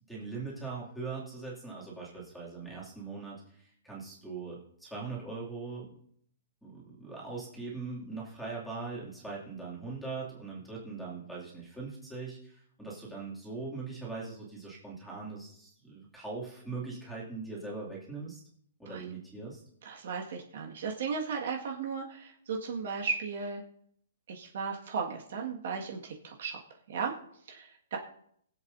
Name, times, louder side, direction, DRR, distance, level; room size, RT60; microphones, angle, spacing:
voice 1, 0.0-6.0 6.6-18.4 18.8-19.6, right 4 dB, ahead, -6 dB, 2.6 m, -41 dB
voice 2, 19.8-23.6 24.3-26.6 26.9-27.1 27.5-28.0, right 5 dB, 55° right, 1 dB, 1.8 m, -35 dB
22.0 x 8.0 x 2.7 m, 0.67 s
hypercardioid pair, 175°, 0 cm